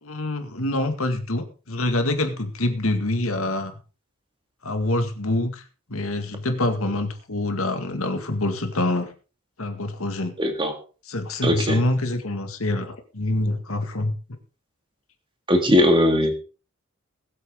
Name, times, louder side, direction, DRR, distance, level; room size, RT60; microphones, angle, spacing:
voice 1, 0.0-3.7 4.6-5.6 5.9-9.1 9.6-10.3 11.1-14.1, left 2 dB, 75° left, 7 dB, 2.1 m, -25 dB
voice 2, 10.4-10.7 11.4-11.8 15.5-16.4, left 1 dB, 25° right, 6 dB, 2.3 m, -19 dB
20.5 x 8.4 x 3.9 m, 0.35 s
head